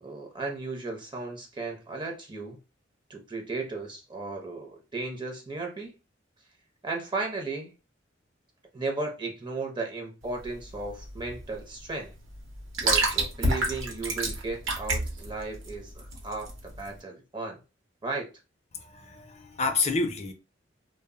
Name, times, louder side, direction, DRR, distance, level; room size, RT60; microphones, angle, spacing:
voice 1, 0.0-2.6 3.1-5.9 6.8-7.7 8.7-12.1 12.8-17.6 18.0-18.3, right 3 dB, 25° right, 0.5 m, -35 dB
sound 1, 10.2-16.9, right 2 dB, 85° right, 0.8 m, -30 dB
voice 2, 18.7-20.3, left 4 dB, 35° left, 0.5 m, -29 dB
2.0 x 2.0 x 3.5 m
head